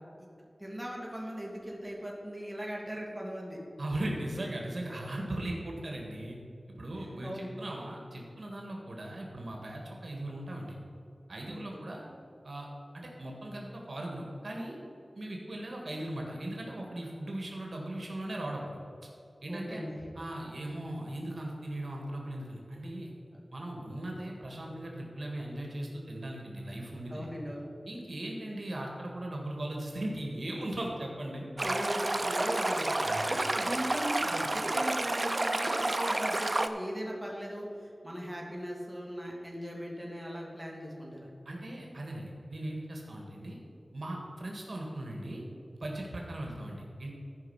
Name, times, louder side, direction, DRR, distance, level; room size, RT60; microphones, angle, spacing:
voice 1, 0.6-3.6 7.2-7.5 11.5-11.8 19.5-20.0 23.3-23.4 27.1-27.7 31.6-41.3, equal, 5° right, -3 dB, 2.5 m, -39 dB
voice 2, 3.8-6.4 6.7-10.8 11.3-12.1 12.4-12.7 12.9-14.8 15.2-18.8 19.4-19.8 20.2-23.1 23.5-27.3 27.9-31.4 33.0-33.4 41.5-43.6 43.9-45.4 45.8-47.1, right 1 dB, 65° right, -1 dB, 1.8 m, -38 dB
Stream, 31.6-36.7, right 2 dB, 40° right, 0.6 m, -30 dB
13.5 x 5.5 x 5.8 m, 2.7 s
wide cardioid pair, 65°, 0 cm